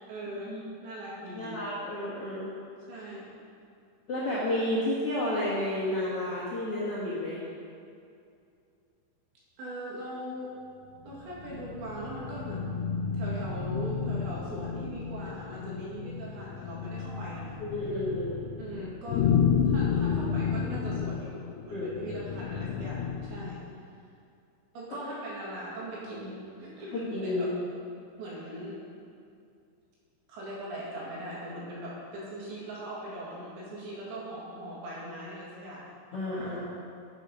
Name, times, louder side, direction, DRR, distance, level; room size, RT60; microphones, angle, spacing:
voice 1, 0.1-1.6 2.9-3.3 9.6-10.5 11.0-12.8 13.1-17.5 18.6-19.3 19.7-23.6 24.7-27.5 28.2-28.8 30.3-35.9, right 1 dB, 90° right, -6 dB, 4.6 m, -40 dB
voice 2, 1.3-2.5 4.1-7.4 17.6-18.4 21.7-22.2 26.9-27.5 36.1-36.6, left 1 dB, 65° left, -9 dB, 1.4 m, -31 dB
sound 1, 11.0-23.7, left 7 dB, 85° left, 2.8 m, -31 dB
9.9 x 7.4 x 5.3 m, 2.4 s
omnidirectional pair, 5.0 m